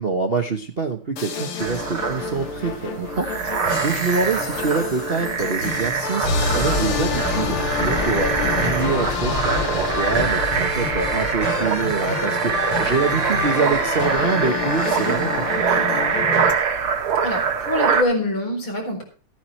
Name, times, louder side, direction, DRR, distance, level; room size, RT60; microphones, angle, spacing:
voice 1, 0.0-3.5 3.8-8.3 8.6-15.9, right 4 dB, 40° right, 3 dB, 0.9 m, -25 dB
sound 1, 1.2-16.5, left 4 dB, 90° left, 2.7 m, -27 dB
sound 2, 1.6-18.0, right 6 dB, 85° right, 2.5 m, -24 dB
sound 3, 6.2-12.5, left 3 dB, 20° left, 3.9 m, -30 dB
voice 2, 17.2-19.0, left 1 dB, 70° left, 1 dB, 5.0 m, -24 dB
14.5 x 9.3 x 4.3 m, 0.39 s
omnidirectional pair, 2.3 m